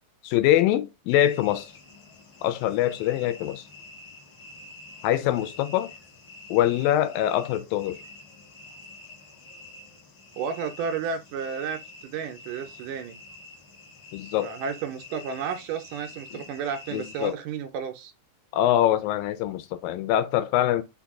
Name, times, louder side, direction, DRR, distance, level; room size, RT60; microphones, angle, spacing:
voice 1, 0.2-1.7 2.4-3.6 5.0-5.9 6.5-8.0 14.1-14.5 16.3-16.4 16.9-17.4 18.5-20.8, left 12 dB, 85° left, 2.3 m, -24 dB
sound 1, 1.1-17.3, left 2 dB, 70° left, 1.1 m, -47 dB
voice 2, 10.4-13.2 14.4-18.1, right 6 dB, 80° right, 2.0 m, -32 dB
5.8 x 2.2 x 3.6 m
omnidirectional pair, 4.0 m